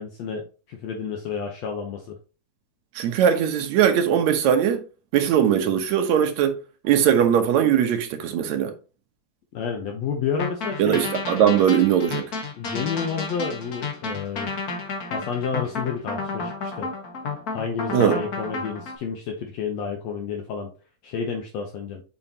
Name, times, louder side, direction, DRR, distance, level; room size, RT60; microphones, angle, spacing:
voice 1, 0.0-2.2 9.5-11.0 12.6-14.6 15.1-16.9 17.5-20.7 21.0-22.0, left 6 dB, 70° left, 1.8 m, -30 dB
voice 2, 3.0-4.8 5.1-6.6 6.8-8.7 10.8-12.2 17.9-18.2, right 9 dB, 70° right, 2.1 m, -20 dB
sound 1, 10.4-18.9, left 4 dB, 85° left, 0.8 m, -31 dB
7.0 x 5.7 x 2.8 m
omnidirectional pair, 3.5 m